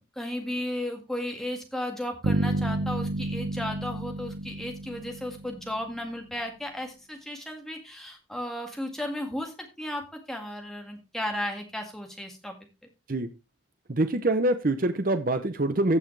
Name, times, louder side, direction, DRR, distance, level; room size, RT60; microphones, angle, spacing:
voice 1, 0.0-12.6, left 1 dB, ahead, 2 dB, 1.8 m, -34 dB
sound 1, 2.2-6.0, right 2 dB, 90° right, 0.6 m, -30 dB
voice 2, 13.9-16.0, right 1 dB, 45° right, 8 dB, 0.7 m, -25 dB
15.5 x 5.6 x 3.2 m, 0.27 s
head